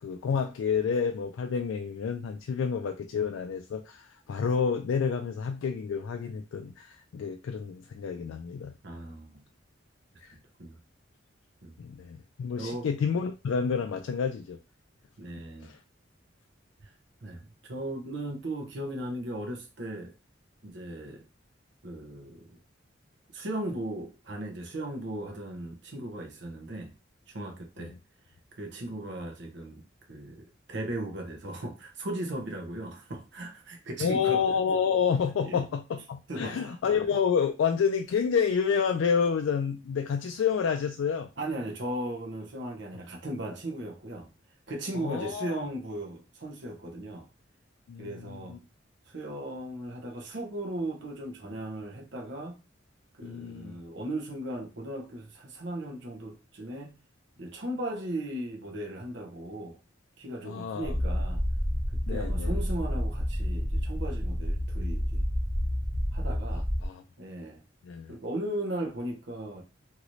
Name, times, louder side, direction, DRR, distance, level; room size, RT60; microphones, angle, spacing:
voice 1, 0.0-8.7 10.2-10.4 11.8-14.6 15.6-15.8 27.8-27.9 34.0-41.3 44.9-45.7 47.9-48.6 53.2-53.8 60.4-61.0 62.1-62.5 66.5-67.0 67.8-68.2, left 6 dB, 90° left, 0.3 m, -29 dB
voice 2, 8.8-9.4 10.3-10.8 11.6-11.8 12.6-12.9 15.2-15.7 16.8-16.9 17.2-20.1 20.6-21.2 21.8-22.4 23.3-26.9 27.3-27.9 28.5-34.4 35.4-35.6 36.3-36.8 41.4-44.3 44.7-47.3 48.0-48.6 49.1-52.6 53.1-56.9 57.4-59.8 60.2-61.4 62.1-65.2 66.1-66.7 67.2-67.6 68.1-69.6, right 1 dB, 65° right, 0.8 m, -37 dB
sound 1, 60.8-66.9, equal, 15° right, 0.6 m, -29 dB
2.9 x 2.6 x 3.0 m
head